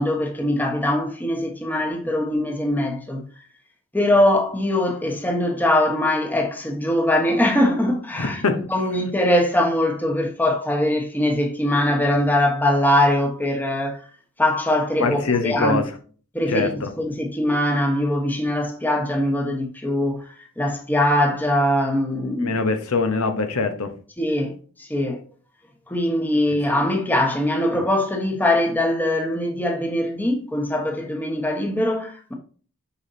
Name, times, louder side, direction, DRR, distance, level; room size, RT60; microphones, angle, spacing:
voice 1, 0.0-3.2 3.9-8.4 8.7-14.0 14.4-15.8 16.3-20.2 20.6-22.5 24.2-24.5 24.8-25.2 25.9-32.3, left 1 dB, 10° left, 1.1 m, -22 dB
voice 2, 8.1-8.7 15.0-15.8 16.5-16.9 22.4-23.9, left 3 dB, 80° left, 0.9 m, -23 dB
7.0 x 5.1 x 2.7 m
head